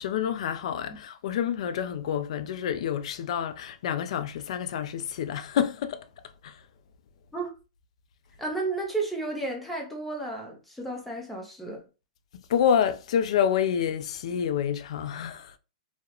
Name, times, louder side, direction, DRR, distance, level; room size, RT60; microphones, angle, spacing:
voice 1, 0.0-6.1 6.4-6.6 12.5-15.6, left 8 dB, 55° left, 0.3 m, -28 dB
voice 2, 8.4-11.9, right 3 dB, 5° left, 0.6 m, -32 dB
2.3 x 2.0 x 2.8 m
hypercardioid pair, 155°, 4 cm